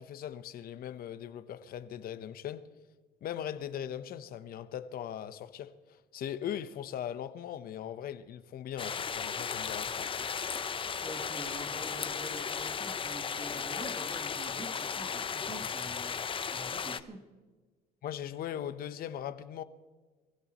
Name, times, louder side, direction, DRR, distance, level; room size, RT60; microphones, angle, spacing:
voice 1, 0.0-2.6 3.2-5.7 6.1-10.1 18.0-19.6, left 10 dB, 60° left, 1.0 m, -39 dB
sound 1, 8.8-17.0, left 6 dB, 30° left, 0.8 m, -35 dB
voice 2, 11.0-16.1 16.4-17.3, right 1 dB, 30° right, 2.6 m, -46 dB
23.5 x 16.5 x 3.1 m
cardioid pair, 110°, 17 cm